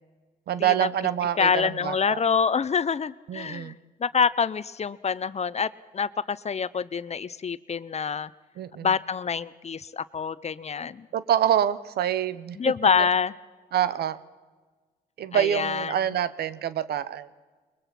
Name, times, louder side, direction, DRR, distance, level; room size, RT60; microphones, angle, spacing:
voice 1, 0.5-2.2 3.3-3.8 8.6-8.9 11.1-12.6 13.7-14.2 15.2-17.3, right 10 dB, 80° right, 16 dB, 0.9 m, -26 dB
voice 2, 1.4-3.7 4.0-8.3 8.8-11.1 12.6-13.3 15.3-16.0, left 6 dB, 40° left, 17 dB, 0.8 m, -26 dB
22.0 x 21.0 x 5.9 m, 1.4 s
cardioid pair, 65°, 16 cm